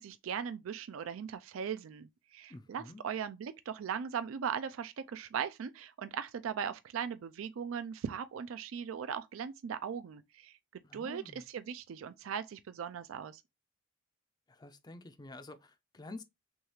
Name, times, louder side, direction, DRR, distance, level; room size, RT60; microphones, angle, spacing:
voice 1, 0.0-10.5 10.9-11.2 11.5-13.4, right 7 dB, 75° right, 0.4 m, -39 dB
voice 2, 2.5-3.0 10.8-11.4 14.5-16.2, left 2 dB, 20° left, 0.4 m, -49 dB
6.2 x 2.4 x 3.0 m
head